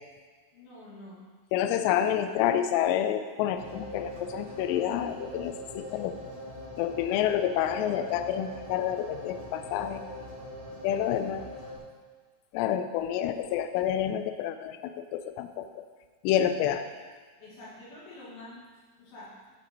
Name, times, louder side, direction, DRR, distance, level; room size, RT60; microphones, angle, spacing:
voice 1, 0.5-1.2 17.4-18.6 19.0-19.3, left 2 dB, 60° left, -9 dB, 4.5 m, -47 dB
voice 2, 1.5-6.1 6.8-10.0 10.8-11.5 12.5-15.9 16.2-16.9, left 10 dB, 85° left, 9 dB, 2.7 m, -28 dB
sound 1, 3.5-11.8, equal, 45° right, 2.9 m, -42 dB
14.5 x 5.6 x 3.0 m, 1.5 s
omnidirectional pair, 5.1 m